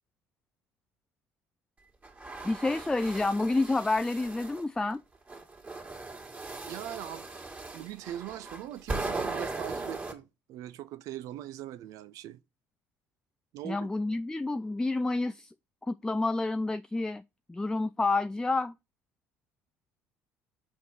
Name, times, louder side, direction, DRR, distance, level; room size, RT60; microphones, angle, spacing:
sound 1, 2.0-4.6 5.3-10.1, right 3 dB, 25° right, 2.2 m, -38 dB
voice 1, 2.4-5.0 13.6-15.5 15.9-17.2 17.5-18.7, left 2 dB, 10° left, 0.4 m, -29 dB
voice 2, 6.6-7.3 7.7-12.4 13.5-13.9, right 12 dB, 65° right, 0.5 m, -41 dB
5.2 x 4.6 x 5.3 m
hypercardioid pair, 70°, 6 cm